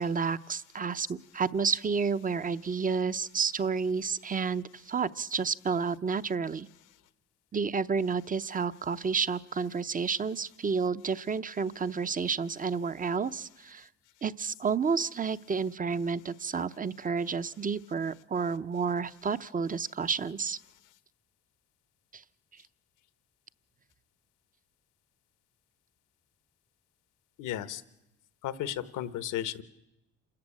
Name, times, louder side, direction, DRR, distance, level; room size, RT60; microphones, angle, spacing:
voice 1, 0.0-6.7 7.5-13.9 14.2-20.6 22.1-22.2, right 5 dB, 25° right, 15 dB, 0.7 m, -30 dB
voice 2, 27.4-27.8 28.4-29.6, left 11 dB, 90° left, 14 dB, 1.2 m, -34 dB
27.5 x 14.0 x 8.8 m, 0.92 s
cardioid pair, 90°, 30 cm